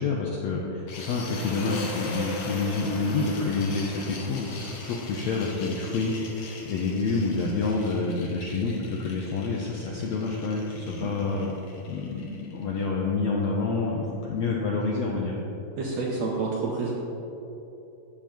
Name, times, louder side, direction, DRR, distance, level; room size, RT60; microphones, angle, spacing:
voice 1, 0.0-11.5 11.9-15.3, left 3 dB, 80° left, -2 dB, 1.6 m, -28 dB
sound 1, 0.9-12.8, left 2 dB, 65° left, 1.7 m, -40 dB
voice 2, 10.8-11.2 15.8-16.9, right 4 dB, 70° right, -3 dB, 1.7 m, -29 dB
14.5 x 7.2 x 3.0 m, 3.0 s
omnidirectional pair, 4.0 m